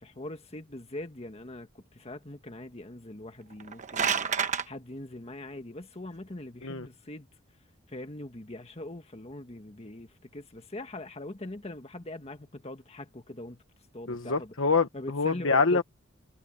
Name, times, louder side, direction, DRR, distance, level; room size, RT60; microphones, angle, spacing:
voice 1, 0.0-7.3 7.9-13.6 13.9-14.5 14.9-15.8, left 1 dB, 30° left, 1.5 m, -42 dB
sound 1, 3.5-4.7, right 6 dB, 40° right, 1.1 m, -28 dB
voice 2, 14.1-15.8, left 4 dB, 80° left, 1.3 m, -26 dB
head